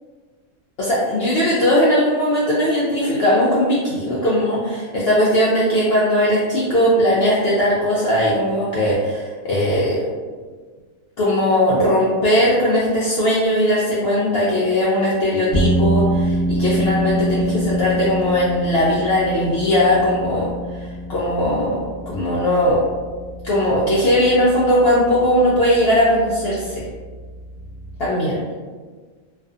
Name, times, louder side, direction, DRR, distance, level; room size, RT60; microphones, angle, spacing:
voice 1, 0.8-10.1 11.2-20.5 21.1-22.8 23.4-26.7 28.0-28.4, equal, 70° left, -7 dB, 0.5 m, -18 dB
sound 1, 15.5-28.0, equal, 20° left, 0.7 m, -26 dB
2.5 x 2.4 x 2.3 m, 1.5 s
omnidirectional pair, 1.5 m